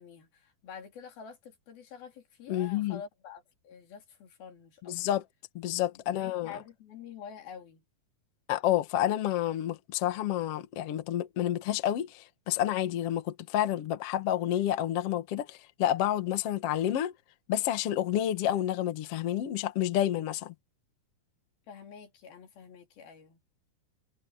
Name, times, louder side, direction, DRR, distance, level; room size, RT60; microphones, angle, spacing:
voice 1, 0.0-5.2 6.1-7.8 21.7-23.4, left 7 dB, 90° left, 5.1 m, -48 dB
voice 2, 2.5-3.0 4.8-5.2 5.6-6.5 8.5-17.1 17.5-20.5, left 12 dB, 55° left, 1.8 m, -29 dB
omnidirectional pair, 4.1 m